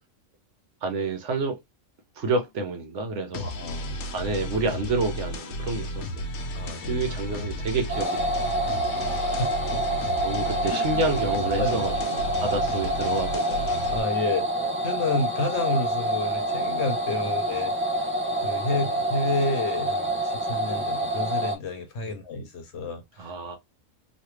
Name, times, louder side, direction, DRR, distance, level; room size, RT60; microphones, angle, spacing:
voice 1, 0.8-1.6 2.2-3.5 4.1-6.2 6.8-8.3 10.2-13.7 22.0-22.1 23.2-23.6, right 3 dB, 65° right, 1.1 m, -29 dB
sound 1, 3.3-14.0, equal, 85° left, 1.1 m, -33 dB
voice 2, 3.4-4.1 6.5-7.1 8.9-10.1 10.7-11.0 11.6-12.2 13.9-14.5 14.8-17.7 18.4-23.3, left 3 dB, 60° left, 1.0 m, -30 dB
sound 2, 7.9-21.5, right 1 dB, 15° right, 0.4 m, -27 dB
3.2 x 2.2 x 3.1 m
omnidirectional pair, 1.3 m